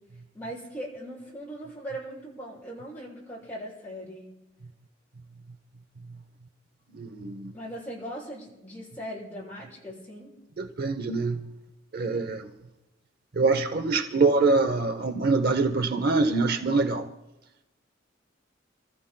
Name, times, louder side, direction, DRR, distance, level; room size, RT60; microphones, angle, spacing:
voice 1, 0.3-4.3 7.5-10.3, equal, 10° left, 6.9 m, -39 dB
voice 2, 7.0-7.5 10.6-11.4 11.9-12.4 13.4-17.1, right 3 dB, 55° right, 0.7 m, -24 dB
29.0 x 14.0 x 2.2 m
head